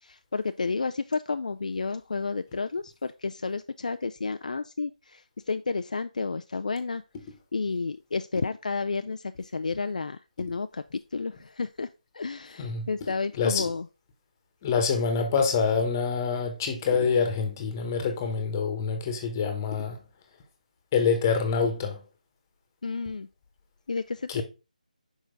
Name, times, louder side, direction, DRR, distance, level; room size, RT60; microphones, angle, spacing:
voice 1, 0.0-7.0 7.5-11.9 12.1-13.9 22.8-23.3 23.9-24.4, left 4 dB, 60° left, 0.4 m, -31 dB
voice 2, 14.6-20.0 20.9-22.0 24.3-24.4, left 5 dB, 25° left, 1.2 m, -26 dB
6.3 x 5.0 x 3.8 m
figure-of-eight pair, 155°, 5 cm